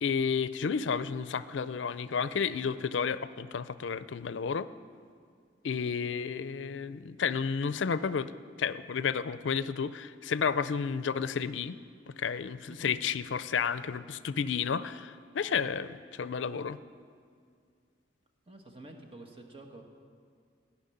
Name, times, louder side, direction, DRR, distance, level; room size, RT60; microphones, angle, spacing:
voice 1, 0.0-4.7 5.6-8.3 8.6-11.8 12.1-16.8, left 6 dB, 85° left, 14 dB, 0.5 m, -31 dB
voice 2, 12.7-13.1 18.5-19.8, right 2 dB, 30° right, 3 dB, 1.4 m, -49 dB
16.5 x 6.0 x 9.8 m, 2.3 s
head